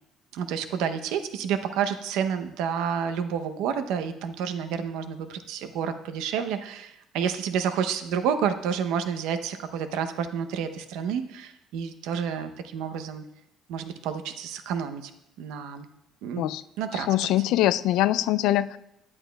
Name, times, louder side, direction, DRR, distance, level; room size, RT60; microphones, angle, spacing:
voice 1, 0.3-13.2 13.7-15.1 15.4-15.9 16.2-16.4 16.8-17.3, right 7 dB, 85° right, 8 dB, 0.7 m, -29 dB
voice 2, 16.9-18.8, left 14 dB, 75° left, 15 dB, 0.3 m, -23 dB
10.0 x 9.7 x 2.3 m, 0.81 s
cardioid pair, 155°, 0 cm